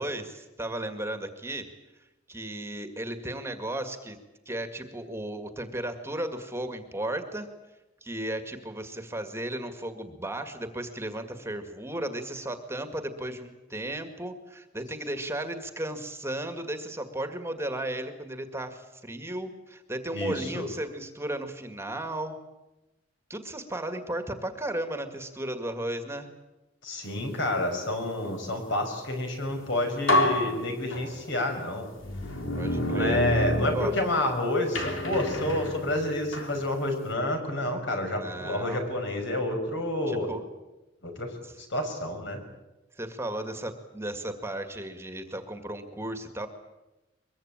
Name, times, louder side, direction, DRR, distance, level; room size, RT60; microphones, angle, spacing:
voice 1, 0.0-1.7 2.3-4.2 4.5-7.5 8.0-22.4 23.3-26.3 32.6-33.4 33.7-34.0 38.1-38.8 40.1-40.4 41.4-41.6 43.0-46.5, right 1 dB, 15° right, 7 dB, 1.9 m, -35 dB
voice 2, 20.1-20.7 26.8-31.9 32.8-40.3 41.0-41.3 41.7-42.4, left 1 dB, 65° left, 4 dB, 6.2 m, -29 dB
sound 1, 29.5-29.6 30.1-31.4 32.0-34.3 34.7-36.6, left 1 dB, 90° left, 4.1 m, -28 dB
23.0 x 22.5 x 8.9 m, 1.0 s
head